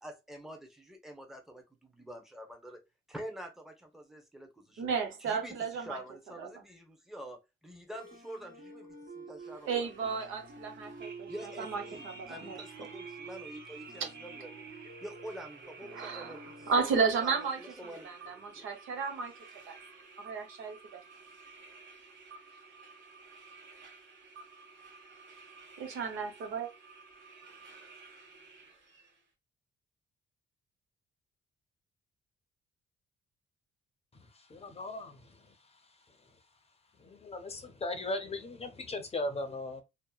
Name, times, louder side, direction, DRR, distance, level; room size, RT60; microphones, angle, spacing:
voice 1, 0.0-2.8 3.1-4.9 5.2-10.2 11.3-14.7 15.0-18.7, equal, ahead, 0.8 m, -47 dB
voice 2, 4.8-6.0 6.4-6.6 9.7-11.3 11.6-12.6 14.0-14.1 15.9-19.3 19.7-19.8 20.2-21.0 25.8-26.7, right 5 dB, 85° right, 0.8 m, -33 dB
sound 1, 7.9-16.8, right 3 dB, 50° right, 1.5 m, -49 dB
sound 2, 9.4-29.2, right 4 dB, 65° right, 1.2 m, -53 dB
voice 3, 34.1-35.5 37.0-39.8, left 2 dB, 30° left, 0.6 m, -38 dB
2.8 x 2.1 x 2.2 m
cardioid pair, 90°, 20 cm